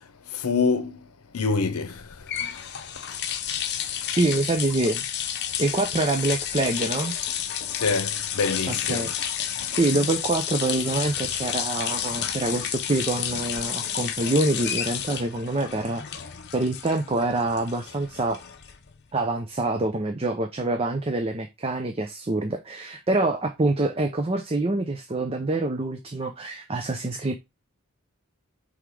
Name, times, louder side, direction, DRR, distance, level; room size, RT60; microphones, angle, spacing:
voice 1, 0.3-1.0 1.3-2.3 3.1-3.2 7.8-9.1, left 4 dB, 85° left, 0.8 m, -26 dB
sound 1, 2.0-19.0, left 9 dB, 50° left, 0.7 m, -31 dB
voice 2, 4.2-5.0 5.6-7.1 8.7-9.1 9.8-16.0 16.5-18.4 19.1-27.3, right 2 dB, 25° right, 0.6 m, -26 dB
5.6 x 3.5 x 4.8 m
head